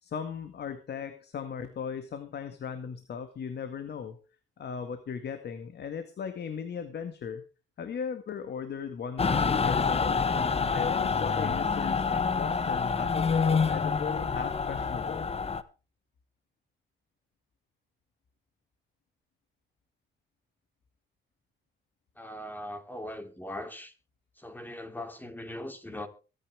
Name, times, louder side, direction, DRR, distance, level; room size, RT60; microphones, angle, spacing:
voice 1, 0.0-4.2 4.6-7.4 7.8-10.2 10.7-15.3, left 6 dB, 55° left, 1.9 m, -37 dB
Mechanical fan, 9.2-15.6, left 5 dB, 30° left, 1.2 m, -27 dB
voice 2, 22.2-23.9 24.4-26.1, left 1 dB, 10° left, 2.8 m, -40 dB
23.0 x 9.9 x 3.5 m
cardioid pair, 90°, 20 cm